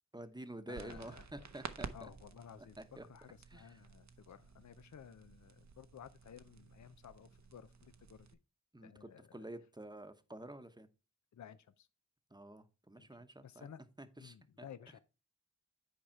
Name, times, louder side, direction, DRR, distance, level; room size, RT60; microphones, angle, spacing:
voice 1, 0.1-1.9 2.6-3.0 3.5-3.6 8.7-10.9 12.3-13.7 14.0-14.4, right 1 dB, 15° right, 0.9 m, -49 dB
voice 2, 0.7-1.5 1.9-8.3 8.8-9.4 11.3-11.9 13.0-13.1 13.4-13.8 14.2-15.0, left 8 dB, 75° left, 0.5 m, -55 dB
sound 1, 0.7-8.3, right 5 dB, 70° right, 0.7 m, -52 dB
8.8 x 4.8 x 4.4 m
wide cardioid pair, 60°, 29 cm